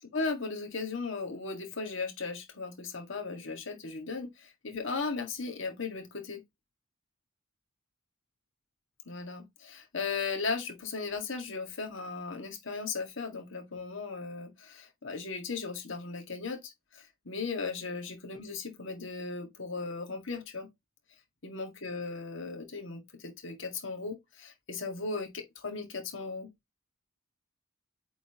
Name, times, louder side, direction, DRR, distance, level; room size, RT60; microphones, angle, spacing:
voice 1, 0.1-6.4 9.1-20.7 21.4-26.5, left 4 dB, 65° left, 1.8 m, -37 dB
8.3 x 3.9 x 2.9 m
head